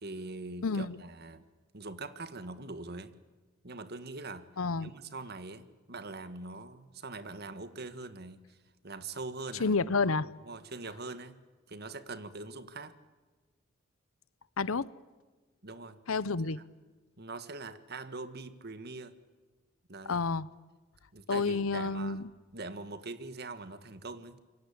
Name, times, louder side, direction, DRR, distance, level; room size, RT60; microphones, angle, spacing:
voice 1, 0.0-1.4 1.7-3.1 3.6-4.5 4.8-8.6 8.8-9.9 10.5-11.4 11.7-13.0 15.6-16.0 16.4-16.5 17.2-19.1 19.9-20.2 21.1-22.2 22.5-24.4, right 3 dB, 50° right, 1.7 m, -43 dB
voice 2, 0.6-1.0 4.6-4.9 9.6-10.3 14.6-14.9 16.1-16.6 20.1-20.5 21.3-22.3, left 4 dB, 85° left, 0.9 m, -29 dB
27.5 x 23.5 x 8.6 m
head